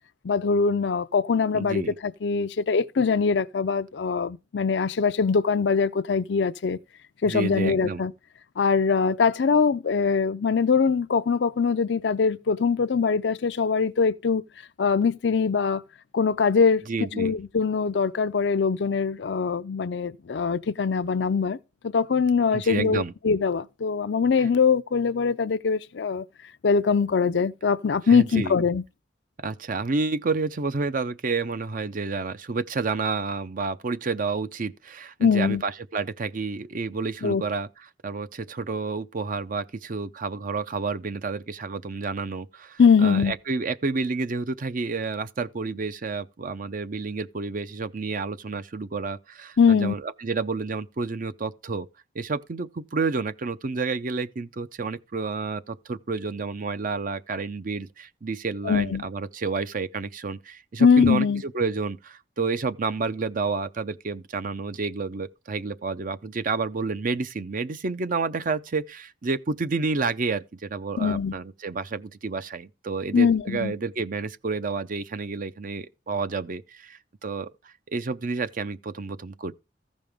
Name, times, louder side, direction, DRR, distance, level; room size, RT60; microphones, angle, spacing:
voice 1, 0.2-6.8 7.2-8.1 8.6-14.4 14.8-15.8 16.1-16.8 17.2-21.6 21.8-26.2 26.6-28.8 35.2-35.6 37.2-37.4 42.8-43.3 49.6-49.9 58.6-59.0 60.8-61.4 71.0-71.3 73.1-73.7, left 5 dB, 70° left, 0.5 m, -22 dB
voice 2, 1.5-1.9 7.2-8.0 16.9-17.3 22.5-23.1 28.1-28.5 29.4-51.9 52.1-79.5, right 4 dB, 50° right, 0.6 m, -30 dB
15.0 x 5.3 x 3.5 m
head